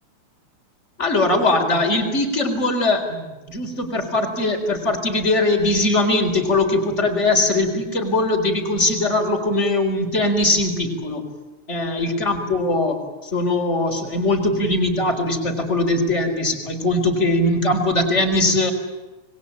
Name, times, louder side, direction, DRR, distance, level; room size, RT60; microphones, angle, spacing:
voice 1, 1.0-11.2 11.7-18.7, left 2 dB, 20° left, 4 dB, 4.3 m, -21 dB
27.0 x 21.5 x 8.9 m, 1.1 s
omnidirectional pair, 3.4 m